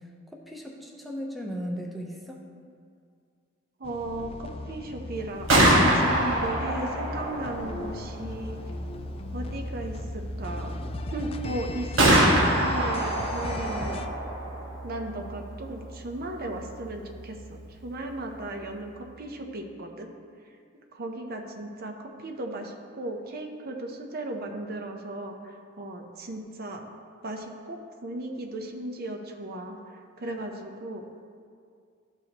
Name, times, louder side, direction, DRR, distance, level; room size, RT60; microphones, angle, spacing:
voice 1, 0.3-2.4, equal, ahead, -1 dB, 0.7 m, -36 dB
sound 1, 3.8-14.1, left 3 dB, 30° left, 0.3 m, -40 dB
voice 2, 3.8-8.8 9.3-10.8 11.1-12.2 12.6-14.0 14.8-20.1 20.5-20.6 20.9-26.8 27.2-31.0, right 1 dB, 50° right, 3 dB, 0.7 m, -36 dB
Gunshot gunfire, 5.2-19.1, right 1 dB, 80° right, 1.3 m, -27 dB
12.5 x 4.8 x 2.9 m, 2.2 s
head